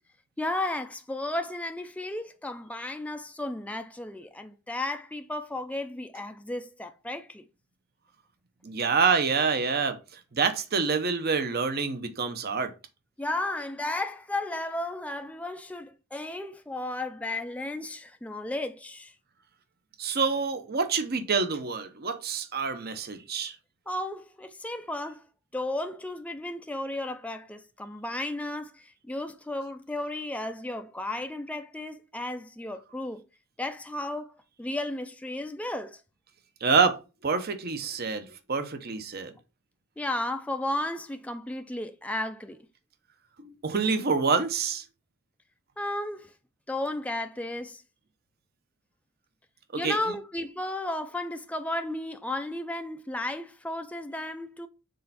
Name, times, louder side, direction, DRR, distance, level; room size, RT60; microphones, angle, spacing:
voice 1, 0.4-7.4 13.2-19.1 23.9-33.2 33.6-36.0 40.0-42.7 45.8-46.3 46.7-47.8 49.8-54.7, left 1 dB, 5° left, 0.4 m, -34 dB
voice 2, 8.6-10.0 10.3-12.7 20.0-23.6 36.6-37.0 37.2-39.3 43.4-44.8 49.7-50.0, right 5 dB, 45° right, 0.8 m, -27 dB
6.6 x 4.3 x 4.1 m
head